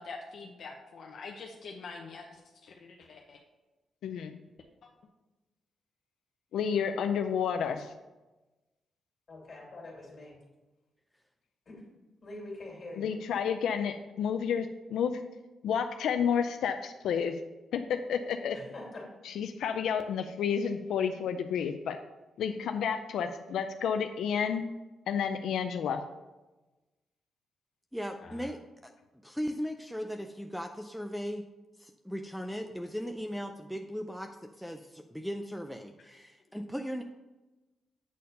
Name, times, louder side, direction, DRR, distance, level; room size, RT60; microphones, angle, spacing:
voice 1, 0.0-3.4 28.2-28.5, left 4 dB, 55° left, 1 dB, 0.7 m, -45 dB
voice 2, 4.0-4.3 6.5-7.9 13.0-15.2 15.6-17.4 17.7-18.6 19.2-22.0 22.4-24.7 25.1-26.0, left 7 dB, 85° left, 6 dB, 0.4 m, -30 dB
voice 3, 9.3-10.3 11.7-11.8 12.2-13.1 18.5-19.1, left 2 dB, 35° left, -2 dB, 2.4 m, -44 dB
voice 4, 27.9-28.9 29.2-31.4 31.8-37.0, equal, ahead, 6 dB, 0.3 m, -38 dB
8.4 x 4.3 x 5.4 m, 1.1 s
wide cardioid pair, 165°, 0 cm